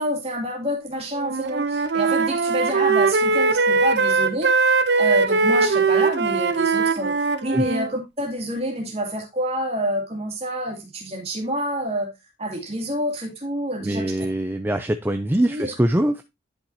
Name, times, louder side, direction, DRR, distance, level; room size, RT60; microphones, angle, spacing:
voice 1, 0.0-4.5 5.0-7.2 7.4-12.1 12.4-14.3 15.4-15.7, equal, 30° right, 2.4 m, -27 dB
Wind instrument woodwind instrument, 1.1-7.9, right 4 dB, 60° right, 0.7 m, -20 dB
voice 2, 13.8-16.2, right 1 dB, 10° right, 0.4 m, -23 dB
10.5 x 5.9 x 2.7 m
head